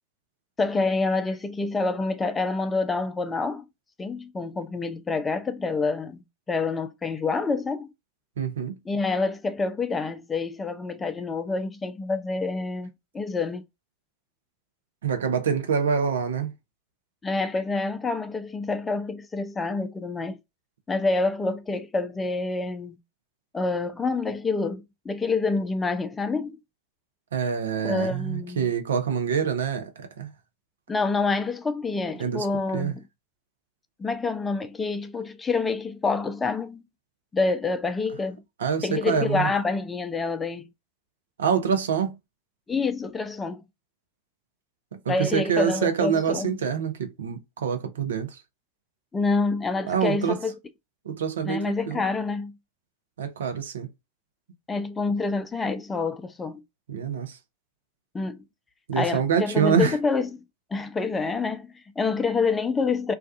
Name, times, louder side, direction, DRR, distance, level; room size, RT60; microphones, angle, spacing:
voice 1, 0.6-3.7 4.0-6.2 6.5-7.9 8.9-13.6 17.2-20.4 20.9-23.0 23.5-26.6 27.8-28.7 30.9-33.0 34.0-36.8 37.3-38.4 38.8-40.7 42.7-43.6 45.1-46.6 49.1-50.5 51.4-52.5 54.7-56.6 58.1-58.4 59.0-60.4 60.7-63.1, left 3 dB, 15° left, 0.4 m, -27 dB
voice 2, 8.4-8.8 15.0-16.5 27.3-30.3 32.2-32.5 32.7-32.9 38.6-39.5 41.4-42.1 45.1-48.3 49.9-50.4 51.1-52.0 53.2-53.9 56.9-57.4 58.9-60.0, right 7 dB, 70° right, 0.6 m, -26 dB
2.4 x 2.3 x 2.3 m
figure-of-eight pair, 90°, 0 cm